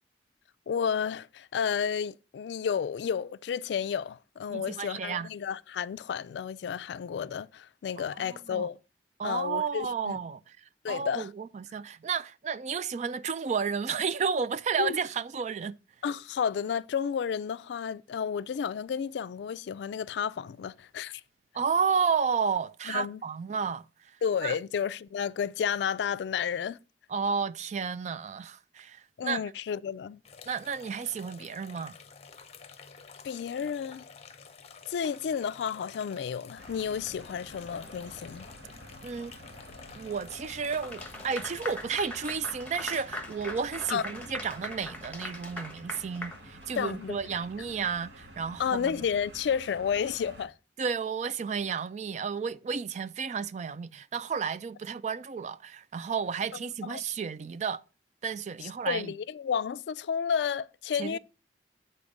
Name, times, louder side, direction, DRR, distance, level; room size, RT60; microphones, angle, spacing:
voice 1, 0.7-8.8 9.2-10.2 10.8-11.3 14.8-15.0 16.0-21.2 22.9-23.2 24.2-26.8 29.2-30.2 33.2-34.0 34.9-38.5 43.9-44.0 46.8-47.2 48.6-50.5 56.8-57.0 58.6-61.2, left 7 dB, 75° left, 0.3 m, -31 dB
voice 2, 4.5-5.3 8.0-8.7 9.2-10.6 10.9-15.8 21.5-23.8 24.4-24.6 27.1-29.4 30.5-31.9 39.0-39.3 40.0-49.0 50.8-57.8 58.2-59.1 61.0-61.2, right 6 dB, 40° right, 0.3 m, -32 dB
sound 1, 30.2-41.8, left 5 dB, 35° left, 0.6 m, -50 dB
sound 2, 36.6-50.5, equal, 80° right, 1.9 m, -50 dB
Clapping / Applause, 40.7-47.0, left 2 dB, 10° left, 1.1 m, -40 dB
8.4 x 4.3 x 5.0 m
head